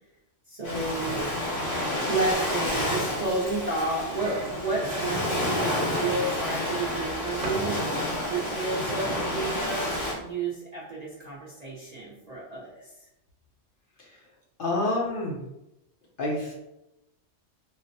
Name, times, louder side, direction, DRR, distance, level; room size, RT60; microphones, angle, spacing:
voice 1, 0.5-1.2 2.0-7.8 8.3-12.9, right 3 dB, 45° right, -6 dB, 0.6 m, -31 dB
Ocean, 0.6-10.1, left 1 dB, 75° left, 1.3 m, -29 dB
sound 1, 4.1-5.8 6.9-7.7 9.9-10.2, right 2 dB, 80° right, 0.9 m, -39 dB
voice 2, 14.6-15.4 16.2-16.5, left 2 dB, 55° left, -3 dB, 0.7 m, -28 dB
3.9 x 2.0 x 2.6 m, 0.90 s
omnidirectional pair, 1.2 m